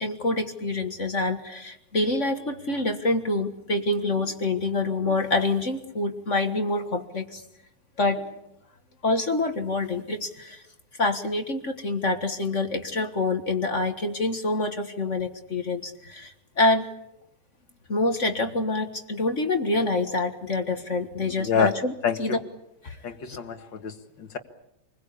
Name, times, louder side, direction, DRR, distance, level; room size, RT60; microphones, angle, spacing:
voice 1, 0.0-7.4 8.0-8.2 9.0-10.6 11.0-16.9 17.9-21.9 22.2-22.3 22.8-23.0 23.3-23.4, left 2 dB, 40° left, 6 dB, 1.8 m, -26 dB
voice 2, 21.4-21.7 22.0-22.4 23.0-24.4, left 6 dB, 60° left, 7 dB, 2.4 m, -27 dB
27.5 x 21.5 x 8.5 m, 0.84 s
omnidirectional pair, 2.3 m